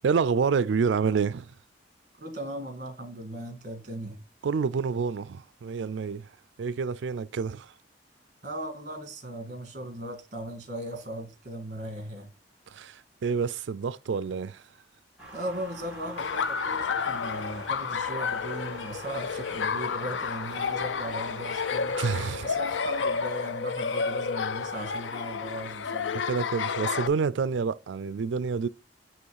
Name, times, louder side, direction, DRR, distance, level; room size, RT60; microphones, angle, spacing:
voice 1, 0.0-1.5 4.4-6.3 6.6-7.7 12.7-14.6 22.0-22.4 26.1-28.7, right 5 dB, 75° right, 0.4 m, -28 dB
voice 2, 2.2-4.2 8.4-12.3 15.3-22.0 22.4-26.2, right 1 dB, 45° right, 1.7 m, -38 dB
sound 1, 15.2-23.3, right 1 dB, 5° right, 2.1 m, -45 dB
Laughter, 16.2-27.1, left 5 dB, 85° left, 0.5 m, -31 dB
7.9 x 3.0 x 4.7 m
head